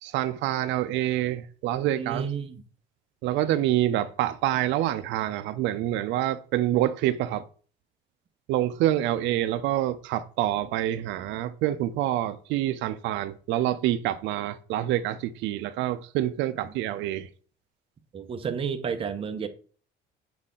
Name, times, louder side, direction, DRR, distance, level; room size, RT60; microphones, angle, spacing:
voice 1, 0.0-2.3 3.2-7.4 8.5-17.3, right 13 dB, 80° right, 0.4 m, -27 dB
voice 2, 1.9-2.6 18.1-19.5, right 6 dB, 30° right, 0.6 m, -31 dB
6.5 x 4.1 x 3.6 m
cardioid pair, 145°, 19 cm